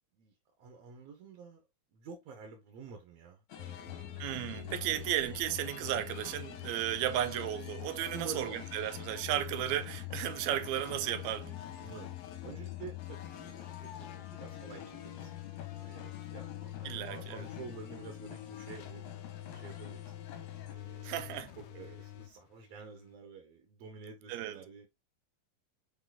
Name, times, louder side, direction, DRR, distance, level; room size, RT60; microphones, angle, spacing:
voice 1, 0.1-1.6 1.9-5.4 8.1-8.7 11.8-12.1 12.4-15.3 15.8-19.1 19.4-20.1 20.7-24.9, right 5 dB, 65° right, 1.7 m, -49 dB
sound 1, 3.5-20.8, left 9 dB, 70° left, 2.1 m, -50 dB
sound 2, 3.6-23.1, left 14 dB, 90° left, 1.4 m, -45 dB
voice 2, 4.2-11.6 16.8-17.5 21.0-21.5 24.3-24.6, right 12 dB, 85° right, 1.6 m, -34 dB
6.2 x 3.7 x 2.3 m
omnidirectional pair, 3.8 m